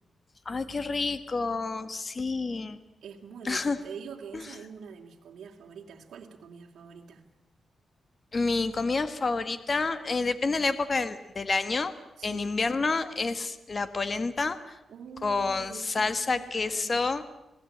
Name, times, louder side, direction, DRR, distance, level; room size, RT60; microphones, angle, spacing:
voice 1, 0.4-2.8 3.4-3.8 4.3-4.4 8.3-11.9 12.2-14.8 15.2-17.2, left 3 dB, 35° left, 11 dB, 1.6 m, -29 dB
voice 2, 3.0-7.2 12.2-12.6 14.9-16.9, right 7 dB, 80° right, 0 dB, 2.7 m, -45 dB
27.0 x 18.5 x 8.8 m, 0.96 s
cardioid pair, 110°, 0 cm